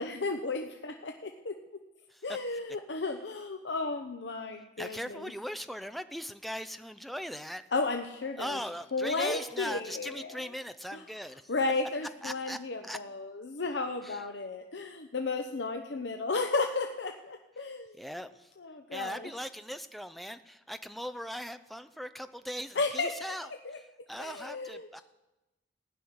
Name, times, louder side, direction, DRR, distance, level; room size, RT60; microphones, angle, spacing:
voice 1, 0.0-1.6 2.2-5.3 7.7-8.6 8.9-10.5 10.9-11.0 11.5-17.9 18.6-19.3 22.7-23.8 24.2-25.0, left 3 dB, 70° left, 4 dB, 0.8 m, -34 dB
voice 2, 4.8-7.6 8.4-11.5 12.2-12.6 12.8-13.0 14.0-14.2 18.0-18.5 18.9-23.8 24.1-25.0, equal, ahead, 10 dB, 0.5 m, -39 dB
16.0 x 6.2 x 9.6 m, 1.0 s
head